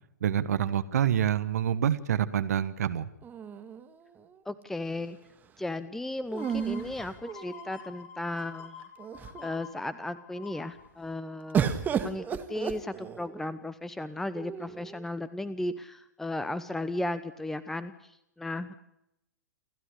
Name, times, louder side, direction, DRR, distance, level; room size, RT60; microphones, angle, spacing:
voice 1, 0.2-3.1, right 9 dB, 60° right, 14 dB, 1.2 m, -27 dB
sound 1, 3.2-4.3 6.3-7.8 8.6-8.7 9.0-9.6 11.5-13.4 14.3-15.0, right 7 dB, 20° right, 1.8 m, -33 dB
voice 2, 4.5-5.2 5.6-8.8 9.4-11.7 12.0-17.9 18.4-18.8, left 1 dB, 5° left, 14 dB, 0.9 m, -35 dB
sound 2, 6.4-11.9 12.3-12.4, left 7 dB, 45° left, 4.3 m, -49 dB
29.0 x 13.0 x 9.9 m, 0.83 s
figure-of-eight pair, 110°, 10 cm